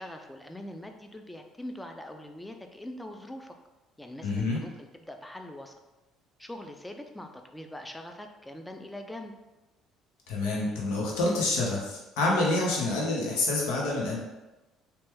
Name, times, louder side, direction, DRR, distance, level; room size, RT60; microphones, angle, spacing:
voice 1, 0.0-3.5 4.0-5.7 6.4-9.3, left 1 dB, 10° left, 4 dB, 0.4 m, -42 dB
voice 2, 4.2-4.6 10.3-14.2, left 2 dB, 90° left, -3 dB, 0.8 m, -27 dB
2.9 x 2.2 x 3.3 m, 1.1 s
supercardioid pair, 85°, 0 cm